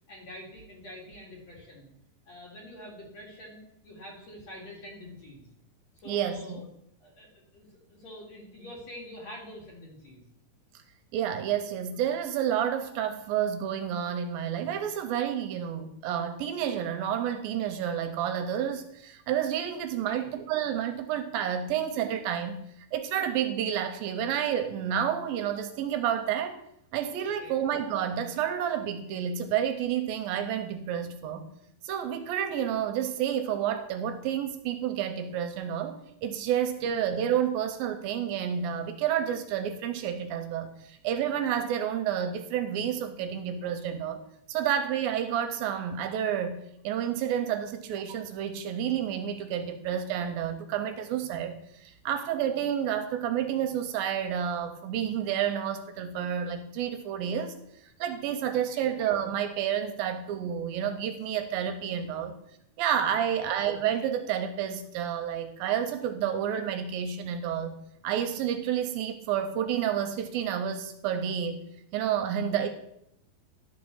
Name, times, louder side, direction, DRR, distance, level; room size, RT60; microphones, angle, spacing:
voice 1, 0.1-1.9 2.3-5.5 6.0-6.7 7.0-10.2 20.0-20.3 27.4-27.6 36.7-36.8 58.7-58.9 63.3-63.5 72.5-72.7, left 1 dB, 50° left, -3 dB, 3.0 m, -46 dB
voice 2, 6.1-6.6 11.1-22.6 22.9-26.6 26.9-31.5 31.8-44.2 44.5-57.5 57.8-62.4 62.8-67.8 68.0-71.6 71.9-72.7, right 9 dB, 80° right, 7 dB, 2.3 m, -30 dB
11.5 x 4.2 x 6.3 m, 0.78 s
omnidirectional pair, 4.4 m